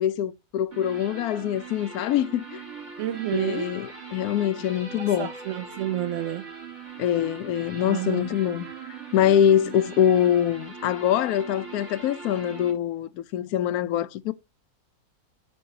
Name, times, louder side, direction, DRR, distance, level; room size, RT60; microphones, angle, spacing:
voice 1, 0.0-2.6 3.3-5.3 7.0-14.3, left 10 dB, 80° left, 1.1 m, -24 dB
sound 1, 0.7-12.7, right 5 dB, 50° right, 3.0 m, -41 dB
voice 2, 3.0-3.7 5.2-6.5 7.8-8.3, right 13 dB, 70° right, 0.7 m, -29 dB
13.0 x 4.5 x 2.7 m
omnidirectional pair, 1.6 m